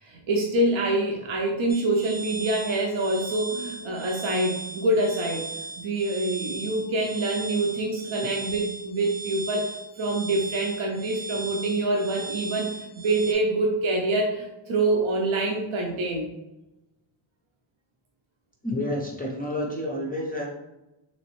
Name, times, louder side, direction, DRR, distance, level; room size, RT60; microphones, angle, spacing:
voice 1, 0.0-16.3, right 2 dB, 85° right, 0 dB, 0.6 m, -26 dB
sound 1, 1.7-13.3, right 2 dB, 30° right, 0.7 m, -37 dB
voice 2, 18.6-20.5, left 1 dB, 20° left, -2 dB, 0.3 m, -29 dB
3.0 x 3.0 x 3.0 m, 0.97 s
wide cardioid pair, 175°, 47 cm